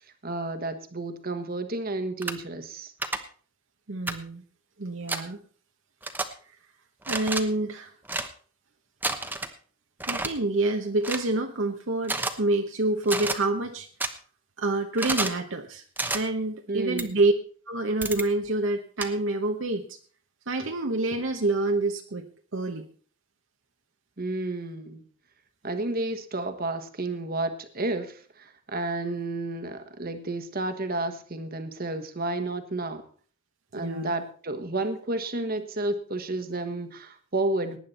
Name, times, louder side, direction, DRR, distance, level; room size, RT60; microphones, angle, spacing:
voice 1, 0.0-2.9 16.7-17.1 24.2-25.0 25.6-33.0 33.7-37.8, right 2 dB, 45° right, 8 dB, 1.4 m, -31 dB
sound 1, 2.2-2.3 3.0-3.2 4.1-4.2 5.1-5.2 6.0-6.3 7.0-7.4 8.1-8.3 9.0-9.5 10.0-10.3 11.0-11.3 12.0-12.3 13.0-13.4 14.0-14.1 15.0-15.4 16.0-16.2 17.0-17.1 18.0-18.3 19.0-19.1, right 2 dB, 10° right, 1.0 m, -29 dB
voice 2, 3.9-4.4 4.8-5.4 7.1-7.9 10.1-13.9 14.6-15.8 16.1-17.3 17.7-20.0 20.5-22.9 33.7-34.1, right 2 dB, 65° right, 4 dB, 1.0 m, -27 dB
18.5 x 9.7 x 4.3 m, 0.43 s
head